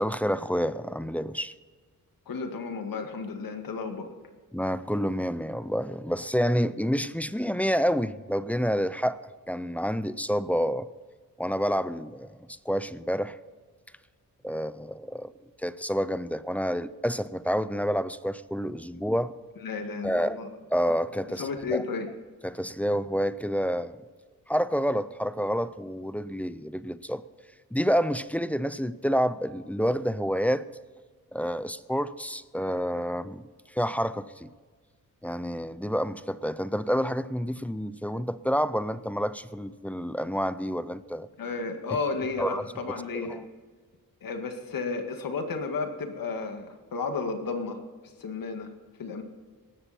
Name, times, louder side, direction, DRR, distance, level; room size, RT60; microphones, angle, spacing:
voice 1, 0.0-1.5 4.5-9.2 9.5-10.9 11.4-13.4 14.4-15.3 15.6-19.3 20.0-20.4 20.7-21.8 22.4-24.0 24.5-27.2 27.7-30.6 31.3-34.5 35.2-41.3 42.4-42.6 43.1-43.4, equal, 5° left, 15 dB, 0.4 m, -28 dB
voice 2, 2.3-4.1 18.9-19.0 19.6-20.5 21.4-22.1 41.4-43.4 44.2-47.8 48.0-48.7 49.0-49.2, left 4 dB, 80° left, 5 dB, 2.0 m, -33 dB
18.5 x 14.0 x 4.3 m, 1.5 s
wide cardioid pair, 170°, 34 cm